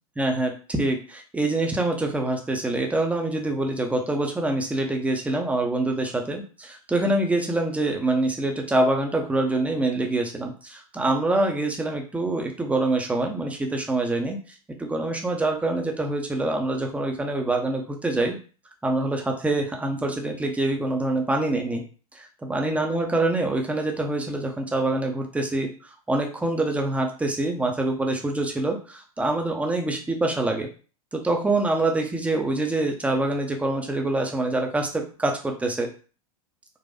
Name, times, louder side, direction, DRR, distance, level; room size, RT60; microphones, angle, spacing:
voice 1, 0.2-14.4 14.8-18.3 18.8-21.8 22.1-30.7 31.1-35.9, right 2 dB, 5° right, 3 dB, 0.7 m, -25 dB
4.0 x 2.5 x 2.6 m, 0.37 s
figure-of-eight pair, 85°, 19 cm